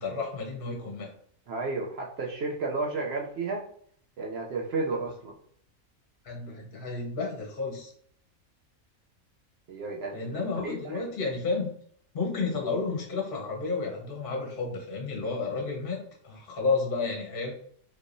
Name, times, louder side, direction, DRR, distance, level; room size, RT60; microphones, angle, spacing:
voice 1, 0.0-1.1 6.2-7.9 10.1-11.7 12.1-16.0 16.2-17.5, left 4 dB, 45° left, -1 dB, 0.9 m, -31 dB
voice 2, 1.5-3.6 4.2-5.4 9.7-11.0, right 3 dB, 65° right, -1 dB, 0.7 m, -32 dB
3.4 x 3.2 x 2.6 m, 0.62 s
omnidirectional pair, 1.5 m